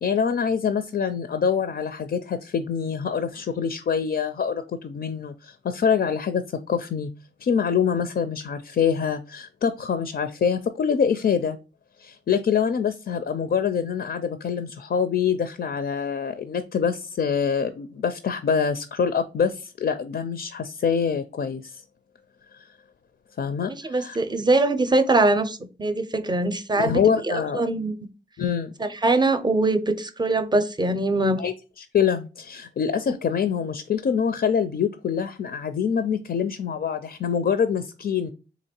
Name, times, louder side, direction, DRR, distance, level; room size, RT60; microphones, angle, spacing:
voice 1, 0.0-7.1 7.4-11.6 12.0-21.8 22.5-22.7 23.4-24.2 26.7-27.6 28.4-28.7 31.4-38.3, left 7 dB, 60° left, 0.4 m, -25 dB
voice 2, 23.7-27.0 27.3-27.9 28.8-31.4, right 2 dB, 25° right, 0.5 m, -22 dB
3.8 x 3.0 x 4.2 m
wide cardioid pair, 115°, 18 cm